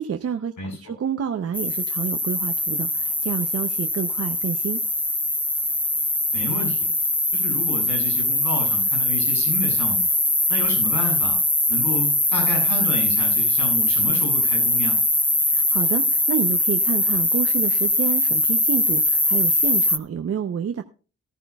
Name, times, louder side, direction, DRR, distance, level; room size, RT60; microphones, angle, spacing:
voice 1, 0.0-0.5 0.8-4.8 15.5-20.8, right 7 dB, 50° right, 6 dB, 0.7 m, -28 dB
voice 2, 0.6-0.9 6.3-6.9 7.3-10.0 10.5-11.4 11.7-15.0, left 2 dB, 70° left, 0 dB, 7.9 m, -30 dB
sound 1, 1.5-20.0, left 1 dB, 5° left, 0.4 m, -22 dB
14.5 x 14.5 x 2.3 m, 0.36 s
wide cardioid pair, 120°, 30 cm